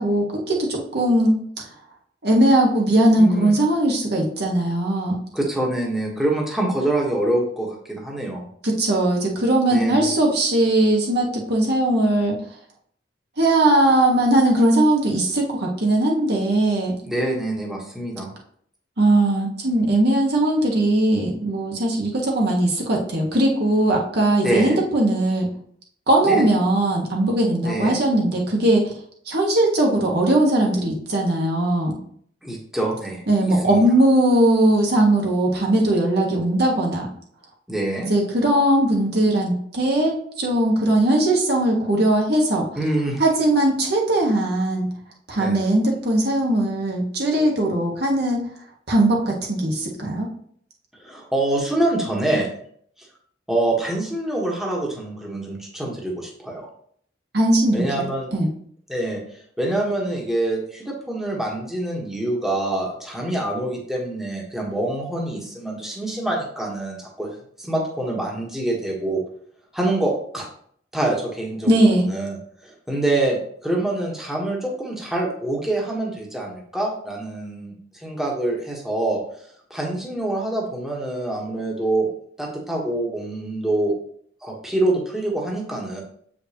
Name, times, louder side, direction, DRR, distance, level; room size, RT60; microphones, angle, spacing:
voice 1, 0.0-1.4 2.2-5.2 8.6-12.4 13.4-16.9 19.0-25.5 26.1-28.9 29.3-32.0 33.3-37.1 38.1-42.7 43.2-44.9 45.3-48.4 48.9-50.3 57.3-57.8 58.3-58.5 71.7-72.1, right 1 dB, 60° right, -1 dB, 1.4 m, -19 dB
voice 2, 3.2-3.5 5.3-8.5 9.7-10.1 17.0-18.3 24.4-24.8 26.2-26.4 27.6-28.0 32.4-33.2 33.6-33.8 37.7-38.1 42.8-43.2 45.4-45.6 51.0-52.5 53.5-56.7 57.7-58.3 58.9-59.2 59.6-67.3 67.6-69.2 69.7-70.5 70.9-72.4 72.6-73.4 73.6-77.7 78.0-79.2 79.7-82.1 82.4-83.9 84.4-86.0, right 1 dB, ahead, -2 dB, 1.2 m, -25 dB
7.4 x 5.0 x 2.9 m, 0.62 s
head